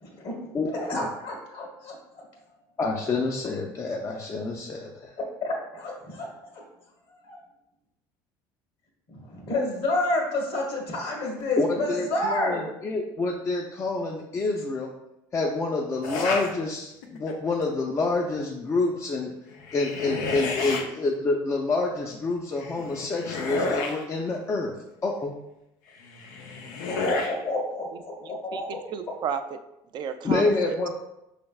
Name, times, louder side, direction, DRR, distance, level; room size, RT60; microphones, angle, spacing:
voice 1, 0.0-2.2 5.2-6.3 6.5-6.6 7.2-7.4 9.1-12.7 26.9-28.7, left 2 dB, 60° left, 0 dB, 1.5 m, -30 dB
voice 2, 0.5-1.0 2.8-5.1 11.6-14.9 15.3-19.3 19.7-24.7 25.0-25.4 30.2-30.9, left 3 dB, 30° left, 0 dB, 0.5 m, -27 dB
sound 1, 16.0-16.5 17.0-17.5 19.5-20.8 22.6-24.0 26.0-27.3, left 3 dB, 90° left, 0.6 m, -31 dB
voice 3, 28.2-29.6 29.9-30.7, right 7 dB, 45° right, 8 dB, 0.4 m, -33 dB
5.2 x 3.3 x 2.3 m, 0.87 s
supercardioid pair, 95°, 10 cm